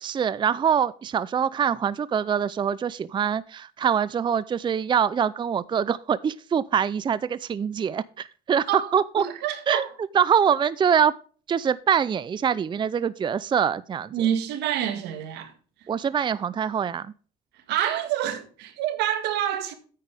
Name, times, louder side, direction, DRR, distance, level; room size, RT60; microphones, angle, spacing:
voice 1, 0.0-9.2 9.7-9.9 10.1-11.1 11.5-14.1 15.9-17.1, right 8 dB, 30° right, 0.5 m, -24 dB
voice 2, 8.7-9.9 14.1-15.5 17.7-19.7, right 10 dB, 85° right, 1.9 m, -27 dB
9.9 x 8.9 x 3.4 m
cardioid pair, 110°, 17 cm